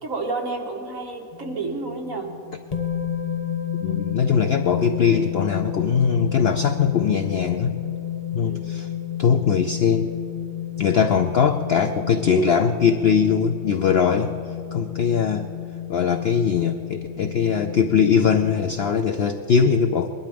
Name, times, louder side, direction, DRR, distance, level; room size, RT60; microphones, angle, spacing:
voice 1, 0.0-2.3 8.4-8.7, right 3 dB, 60° right, 1 dB, 2.1 m, -30 dB
sound 1, 1.3-19.2, left 10 dB, 30° left, 0.9 m, -31 dB
voice 2, 3.8-7.8 8.3-8.9 9.2-10.1 10.8-14.3 14.7-15.5 15.9-20.1, left 6 dB, 65° left, 8 dB, 0.6 m, -21 dB
20.5 x 12.0 x 5.2 m, 2.8 s
omnidirectional pair, 1.6 m